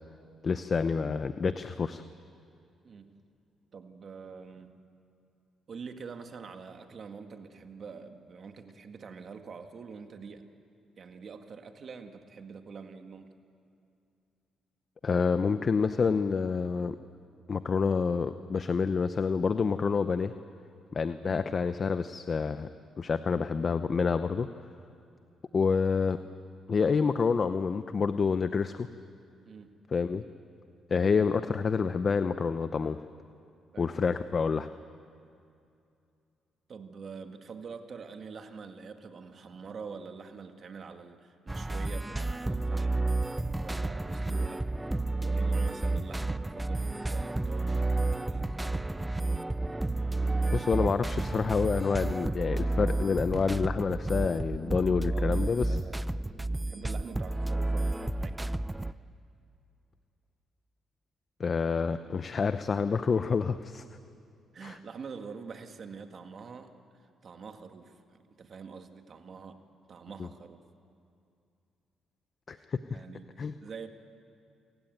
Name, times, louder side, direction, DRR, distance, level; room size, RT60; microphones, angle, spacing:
voice 1, 0.4-2.0 15.0-17.0 17.5-20.3 20.9-22.7 23.0-24.5 25.5-26.2 26.7-28.9 29.9-30.2 30.9-33.0 33.8-34.7 50.5-55.8 61.4-63.8 64.6-64.8 70.2-70.3 72.5-73.0 73.4-73.6, left 5 dB, 40° left, 11 dB, 0.7 m, -28 dB
voice 2, 3.7-4.7 5.7-10.4 11.0-13.3 21.2-21.5 29.4-29.8 33.7-33.9 36.7-43.1 43.5-44.7 45.1-49.1 54.6-56.0 56.7-58.5 64.5-66.7 67.2-69.6 69.9-70.6 72.5-72.7 72.9-73.9, right 5 dB, 50° right, 6 dB, 1.8 m, -45 dB
sound 1, 41.5-58.9, right 2 dB, 10° right, 0.5 m, -31 dB
28.0 x 16.5 x 9.2 m, 2.5 s
cardioid pair, 90°, 0 cm